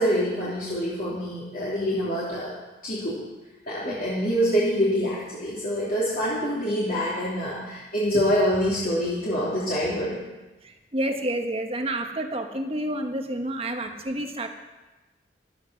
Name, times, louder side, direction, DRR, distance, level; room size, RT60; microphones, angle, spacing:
voice 1, 0.0-2.5 2.8-3.2 3.7-10.2, equal, 45° left, -8 dB, 3.0 m, -25 dB
voice 2, 10.6-14.5, right 1 dB, 30° right, 5 dB, 1.3 m, -29 dB
14.0 x 12.0 x 5.7 m, 1.1 s
head